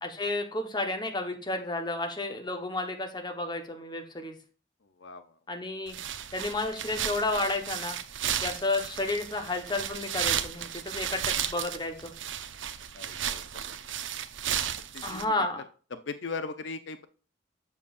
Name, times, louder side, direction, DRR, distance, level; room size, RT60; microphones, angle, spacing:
voice 1, 0.0-4.3 5.5-6.0 6.3-8.0 8.4-11.2 11.5-12.1 15.0-15.6, left 2 dB, 25° left, 4 dB, 1.1 m, -31 dB
sound 1, 5.9-15.2, right 9 dB, 80° right, 0.6 m, -34 dB
voice 2, 12.9-13.4 14.9-15.5 15.9-17.0, left 4 dB, 75° left, 10 dB, 0.6 m, -38 dB
7.4 x 6.8 x 2.5 m, 0.39 s
head